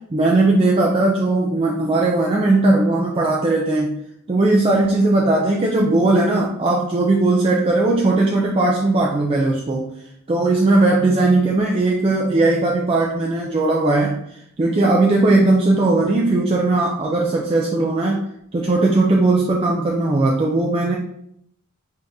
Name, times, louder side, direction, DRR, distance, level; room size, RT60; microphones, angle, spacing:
voice 1, 0.1-4.0 4.3-9.9 10.3-14.2 14.6-18.2 18.5-20.9, right 2 dB, 25° right, -2 dB, 0.4 m, -18 dB
3.8 x 2.7 x 3.4 m, 0.74 s
head